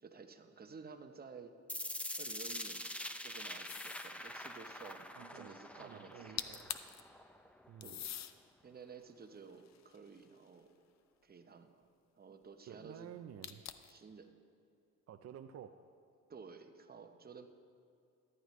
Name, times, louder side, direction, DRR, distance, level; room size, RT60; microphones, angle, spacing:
voice 1, 0.0-1.5 2.2-2.9 3.2-5.1 5.3-6.6 7.8-8.2 8.6-10.8 11.2-11.9 12.2-13.1 13.9-14.4 16.3-17.5, right 5 dB, 30° right, 7 dB, 0.8 m, -53 dB
sound 1, 1.7-7.7, left 1 dB, 5° left, 0.5 m, -45 dB
sound 2, 3.7-4.2 6.1-6.2 6.4-7.0 7.8-8.3 9.0-10.5 13.4-14.0, left 11 dB, 65° left, 0.6 m, -44 dB
voice 2, 5.1-6.7 7.7-8.0 12.2-12.3 12.7-13.6 15.1-15.8, right 9 dB, 55° right, 7 dB, 0.5 m, -52 dB
14.0 x 11.0 x 3.1 m, 2.5 s
cardioid pair, 90°, 30 cm